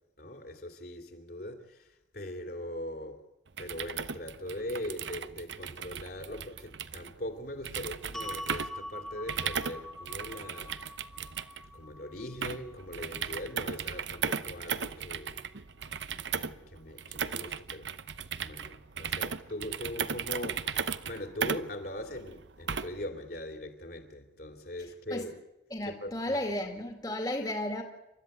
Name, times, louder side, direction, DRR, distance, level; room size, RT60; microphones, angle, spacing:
voice 1, 0.2-3.2 3.6-10.8 11.7-15.4 16.4-17.9 18.4-25.3 25.9-26.4, left 1 dB, 55° left, 2.7 m, -41 dB
sound 1, 3.5-23.1, right 6 dB, 75° right, 0.8 m, -37 dB
sound 2, 8.1-14.4, left 1 dB, ahead, 1.1 m, -45 dB
voice 2, 25.7-27.8, left 1 dB, 20° left, 2.0 m, -33 dB
28.5 x 13.5 x 8.9 m
head